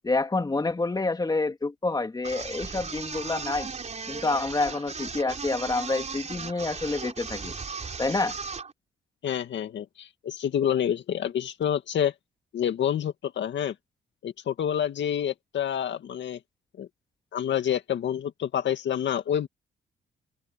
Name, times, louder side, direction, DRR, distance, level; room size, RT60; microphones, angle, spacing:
voice 1, 0.0-3.7 4.1-7.5 8.0-8.4, left 3 dB, 20° left, 2.7 m, -28 dB
sound 1, 2.2-8.7, right 5 dB, 35° right, 4.4 m, -36 dB
voice 2, 9.2-12.1 12.5-13.7 14.2-16.4 16.8-16.9 17.3-19.5, left 9 dB, 65° left, 2.2 m, -28 dB
open air
cardioid pair, 90°, 20 cm